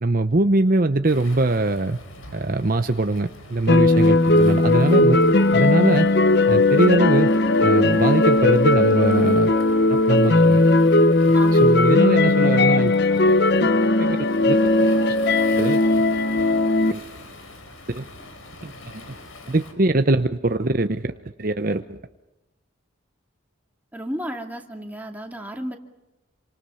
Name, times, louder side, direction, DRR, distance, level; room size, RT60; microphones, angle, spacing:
voice 1, 0.0-2.0 2.3-5.2 5.5-6.1 6.5-7.3 7.6-9.5 9.9-10.6 11.5-12.9 13.6-13.7 14.0-14.2 14.5-14.6 15.6-15.8 16.9-17.0 17.9-18.1 18.6-19.0 19.5-22.0, right 2 dB, 45° right, 8 dB, 0.7 m, -22 dB
Waves surf, 1.1-19.7, left 1 dB, 85° left, 5.0 m, -43 dB
sound 1, 3.7-16.9, left 2 dB, 50° left, 0.8 m, -17 dB
voice 2, 11.3-11.9 23.9-25.8, equal, 10° right, 2 dB, 2.4 m, -33 dB
28.0 x 25.5 x 5.7 m, 1.0 s
head